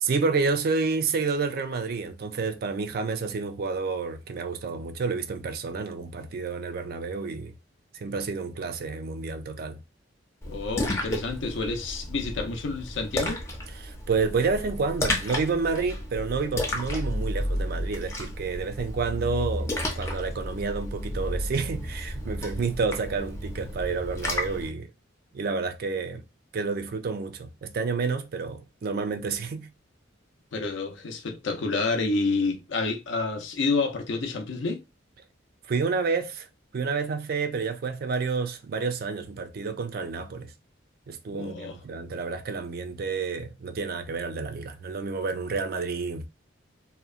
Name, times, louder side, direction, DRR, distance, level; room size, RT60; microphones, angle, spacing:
voice 1, 0.0-7.5 7.9-9.8 13.8-24.9 25.3-26.2 26.5-29.7 35.7-36.5 36.7-40.5 41.1-46.3, right 4 dB, 50° right, 0.4 m, -29 dB
voice 2, 10.4-13.4 30.5-34.8 41.3-41.8, left 3 dB, 65° left, 0.5 m, -29 dB
Splash splatter, 10.4-24.7, left 1 dB, 15° left, 0.5 m, -32 dB
2.8 x 2.0 x 2.4 m
head